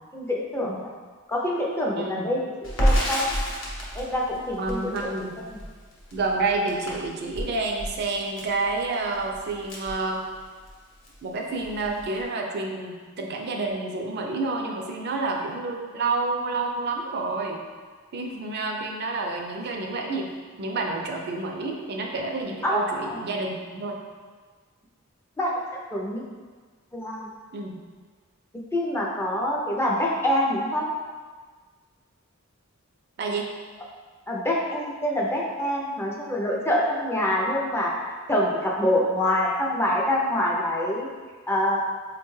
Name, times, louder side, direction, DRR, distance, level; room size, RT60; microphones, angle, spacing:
voice 1, 0.1-0.9 1.3-3.2 3.9-5.1 22.6-23.2 25.4-25.5 25.9-26.2 26.9-27.3 28.7-30.8 34.3-37.9 38.3-41.1 41.5-41.8, left 1 dB, 10° left, -3 dB, 0.4 m, -25 dB
voice 2, 2.0-2.3 4.6-5.4 6.1-10.2 11.2-17.6 18.1-20.3 20.6-24.0 27.5-27.8 33.2-33.5, right 3 dB, 50° right, 1 dB, 0.4 m, -29 dB
Crackle, 2.6-10.7 11.0-11.2 11.5-12.2, equal, 65° left, 0.8 m, -30 dB
4.6 x 2.2 x 3.1 m, 1.5 s
head